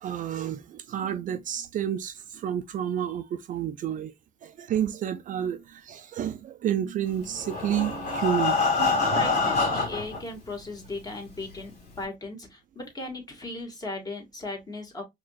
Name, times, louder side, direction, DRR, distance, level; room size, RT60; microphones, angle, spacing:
voice 1, 0.0-4.1 4.4-9.3, right 10 dB, 50° right, 0.5 m, -30 dB
Breathing, 7.3-10.2 11.0-11.1 11.4-11.5 12.0-12.1, left 4 dB, 65° left, 2.1 m, -25 dB
voice 2, 9.0-15.0, left 2 dB, 20° left, 1.8 m, -37 dB
4.8 x 3.0 x 2.3 m
cardioid pair, 110°, 17 cm